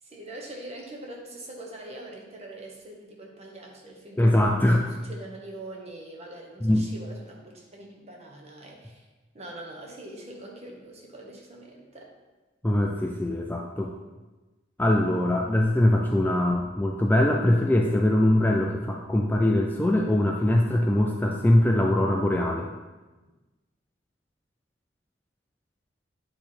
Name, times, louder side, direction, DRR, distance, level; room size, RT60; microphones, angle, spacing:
voice 1, 0.0-9.0 9.3-12.1, right 1 dB, 35° right, -1 dB, 1.1 m, -43 dB
voice 2, 4.2-4.9 6.6-6.9 12.6-13.9 14.8-22.7, left 1 dB, 10° left, 0 dB, 0.4 m, -22 dB
8.0 x 3.3 x 4.3 m, 1.2 s
head